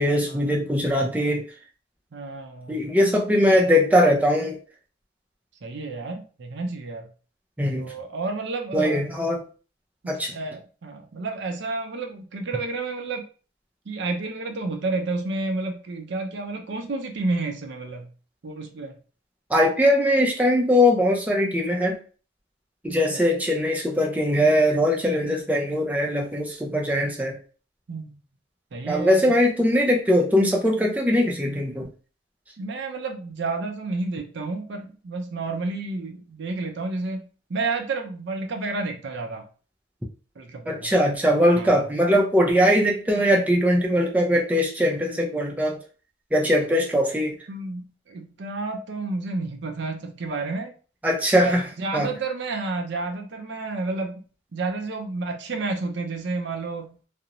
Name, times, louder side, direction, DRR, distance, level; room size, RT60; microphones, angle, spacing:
voice 1, 0.0-1.4 2.7-4.6 7.6-7.9 8.7-9.4 10.1-10.3 19.5-22.0 22.8-27.4 28.9-31.8 40.7-45.8 46.3-47.4 51.0-51.6 51.9-52.1, equal, 10° right, 0 dB, 0.4 m, -21 dB
voice 2, 2.1-2.8 5.6-7.1 7.8-9.2 10.0-13.2 13.9-18.1 18.4-18.9 22.9-23.2 27.9-28.1 28.7-29.4 32.6-39.4 40.4-40.9 41.5-41.8 47.5-50.7 51.4-54.2 54.5-57.0, right 3 dB, 60° right, 4 dB, 0.5 m, -30 dB
2.4 x 2.0 x 2.8 m, 0.37 s
head